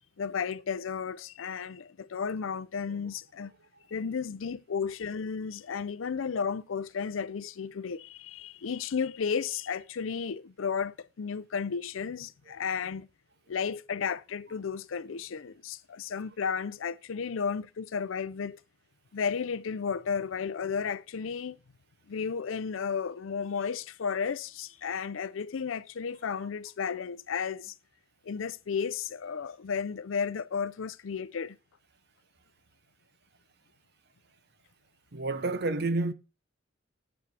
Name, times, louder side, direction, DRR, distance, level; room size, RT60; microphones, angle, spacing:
voice 1, 0.2-3.5 3.9-13.1 13.5-18.6 19.1-21.6 22.1-27.7 28.2-31.6, left 6 dB, 75° left, 0.5 m, -33 dB
voice 2, 35.1-36.1, right 2 dB, 55° right, 0.8 m, -29 dB
8.2 x 7.4 x 3.3 m
head